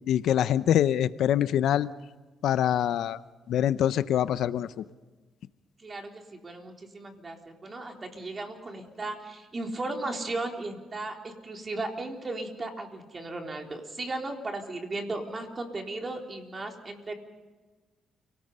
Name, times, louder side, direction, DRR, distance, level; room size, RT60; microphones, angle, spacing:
voice 1, 0.1-1.9 2.4-3.2 3.5-4.7, left 10 dB, 75° left, 14 dB, 0.7 m, -24 dB
voice 2, 5.8-17.1, right 2 dB, 30° right, 2 dB, 3.9 m, -36 dB
29.0 x 18.5 x 5.6 m, 1.3 s
cardioid pair, 90°, 0 cm